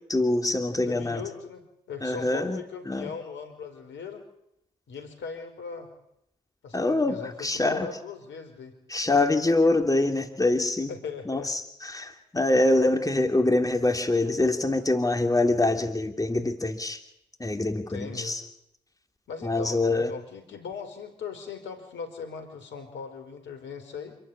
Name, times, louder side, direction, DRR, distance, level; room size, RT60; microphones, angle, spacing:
voice 1, 0.1-1.2 2.0-2.6 2.9-3.1 6.7-7.9 8.9-10.9 11.3-17.0 17.4-18.4 19.4-20.1, left 2 dB, 20° left, 5 dB, 3.0 m, -24 dB
voice 2, 0.8-4.2 4.9-5.9 6.6-8.8 10.9-11.5 17.9-18.4 19.3-24.2, left 5 dB, 70° left, 7 dB, 4.8 m, -39 dB
27.0 x 13.5 x 9.9 m, 0.78 s
hypercardioid pair, 40°, 20 cm